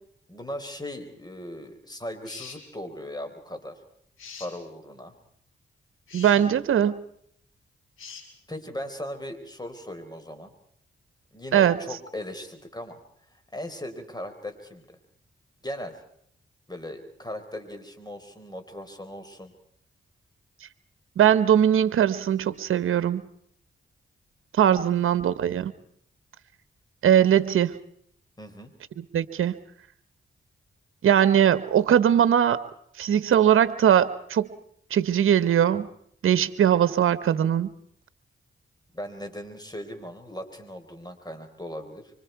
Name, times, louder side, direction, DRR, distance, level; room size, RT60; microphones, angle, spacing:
voice 1, 0.3-3.8 4.4-5.1 6.3-6.5 8.5-10.5 11.3-13.0 13.5-15.0 15.6-16.0 16.7-19.5 24.7-24.9 28.4-28.7 38.9-42.1, left 1 dB, 20° left, 7 dB, 4.4 m, -38 dB
sound 1, 2.2-2.6 4.2-4.5 6.1-6.4 8.0-8.3, left 6 dB, 85° left, 4.5 m, -42 dB
voice 2, 6.1-7.0 11.5-11.8 21.2-23.2 24.6-25.7 27.0-27.8 29.1-29.6 31.0-32.6 33.0-34.5 34.9-35.9 36.2-37.7, right 9 dB, 85° right, 14 dB, 1.0 m, -20 dB
25.5 x 25.0 x 4.7 m, 0.66 s
cardioid pair, 55°, 21 cm